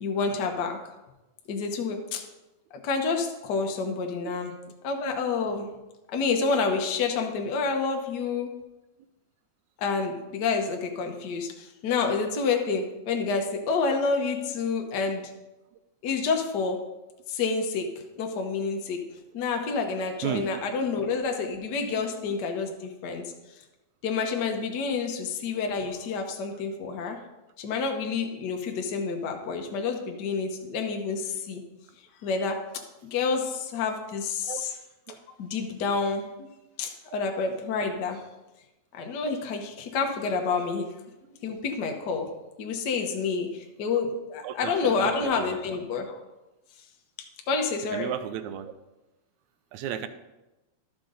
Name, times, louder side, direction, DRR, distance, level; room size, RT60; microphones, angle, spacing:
voice 1, 0.0-0.8 1.5-2.2 2.8-4.5 4.8-5.7 6.1-8.5 9.8-15.3 16.0-16.8 17.3-17.9 18.2-19.0 19.3-23.3 24.0-27.2 27.6-31.6 32.2-32.6 33.0-34.8 35.4-36.3 36.8-38.2 38.9-40.9 41.4-42.3 42.6-46.2 47.5-48.1, left 4 dB, 75° left, 3 dB, 0.9 m, -28 dB
voice 2, 44.8-45.6 47.9-48.7 49.7-50.1, right 10 dB, 80° right, 10 dB, 1.9 m, -33 dB
13.0 x 6.0 x 3.8 m, 1.0 s
omnidirectional pair, 3.3 m